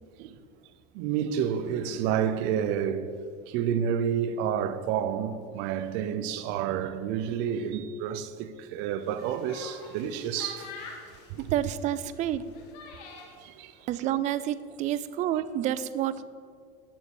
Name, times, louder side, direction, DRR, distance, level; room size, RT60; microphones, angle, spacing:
voice 1, 0.9-3.1 3.5-10.7 11.3-11.5 13.4-13.7, right 8 dB, 55° right, 0.8 m, -29 dB
sound 1, 9.0-13.5, left 4 dB, 80° left, 2.2 m, -46 dB
voice 2, 11.4-12.4 13.9-16.2, right 11 dB, 35° right, 0.5 m, -29 dB
11.5 x 7.1 x 7.2 m
cardioid pair, 160°, 21 cm